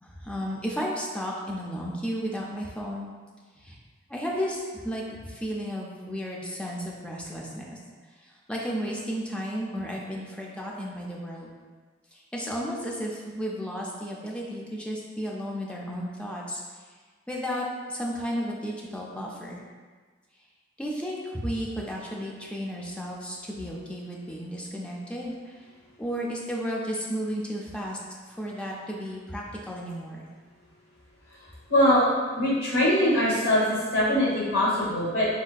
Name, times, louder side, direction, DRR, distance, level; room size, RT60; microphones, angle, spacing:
voice 1, 0.0-3.1 3.5-3.8 4.1-7.8 8.1-11.5 12.1-16.9 17.3-19.6 20.8-25.7 26.0-28.0 28.3-30.2, equal, 5° left, -3 dB, 0.3 m, -33 dB
voice 2, 31.7-32.0 32.3-35.3, left 1 dB, 60° left, -8 dB, 0.9 m, -22 dB
3.7 x 2.5 x 2.3 m, 1.5 s
head